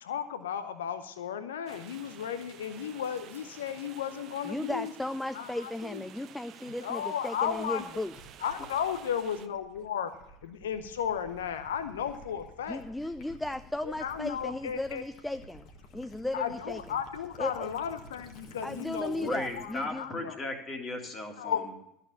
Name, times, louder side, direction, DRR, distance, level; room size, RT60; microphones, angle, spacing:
voice 1, 0.0-4.9 5.3-6.0 6.8-7.9 8.4-10.1 10.4-12.8 13.8-15.0 16.3-20.4 21.4-21.6, left 8 dB, 70° left, 11 dB, 0.7 m, -34 dB
sound 1, 1.7-9.5, right 10 dB, 45° right, 0.7 m, -51 dB
voice 2, 4.4-8.1 12.7-15.7 15.9-16.8 17.4-17.7 18.6-20.0, left 1 dB, 5° left, 12 dB, 0.4 m, -35 dB
Gurgling / Liquid, 7.3-19.9, left 1 dB, 50° left, 1.7 m, -53 dB
voice 3, 19.2-21.7, left 2 dB, 30° left, 3 dB, 2.2 m, -36 dB
13.0 x 6.8 x 6.9 m, 0.79 s
figure-of-eight pair, 65°, 0 cm